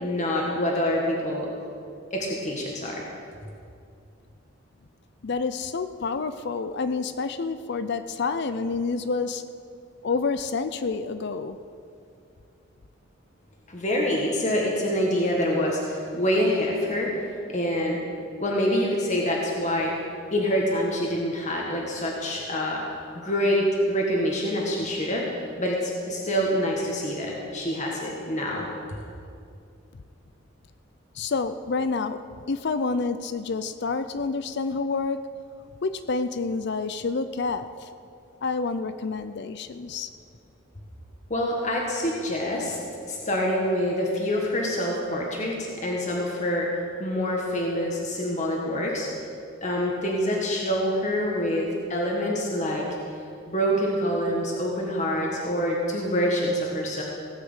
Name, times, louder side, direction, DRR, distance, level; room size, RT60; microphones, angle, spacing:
voice 1, 0.0-1.5 2.1-3.0 13.7-17.1 17.5-18.0 18.4-19.9 20.3-22.8 23.1-25.2 25.6-28.7 41.3-42.8 43.1-46.7 47.0-49.1 49.6-52.9 53.5-57.0, equal, 35° left, -2 dB, 1.6 m, -26 dB
voice 2, 5.2-9.4 10.0-11.6 31.2-32.2 32.5-35.3 35.8-37.9 38.4-40.1, left 4 dB, 55° left, 11 dB, 0.5 m, -28 dB
17.5 x 6.4 x 8.2 m, 2.4 s
head